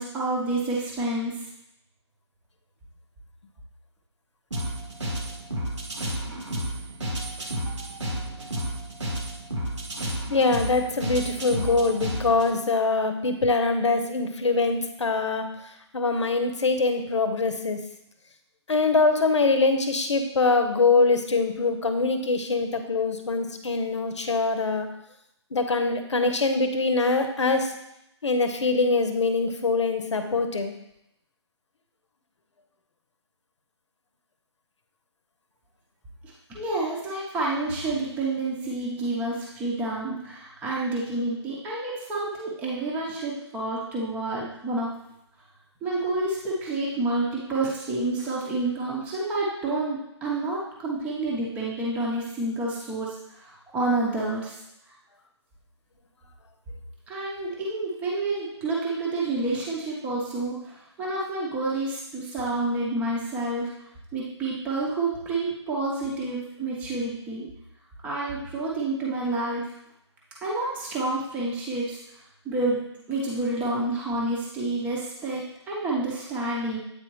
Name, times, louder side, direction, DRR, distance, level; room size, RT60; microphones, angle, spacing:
voice 1, 0.0-1.5 36.5-44.9 45.8-54.5 57.1-63.7 64.1-67.5 68.0-69.7 70.4-72.2 72.4-72.8 73.1-76.8, right 2 dB, 10° right, -5 dB, 0.8 m, -29 dB
sound 1, 4.5-12.5, right 1 dB, 85° right, 1.5 m, -32 dB
voice 2, 10.3-15.5 15.9-17.8 18.7-24.9 25.5-27.7 28.2-30.7, left 3 dB, 80° left, 6 dB, 0.9 m, -23 dB
8.6 x 3.5 x 3.1 m, 0.81 s
hypercardioid pair, 155°, 15 cm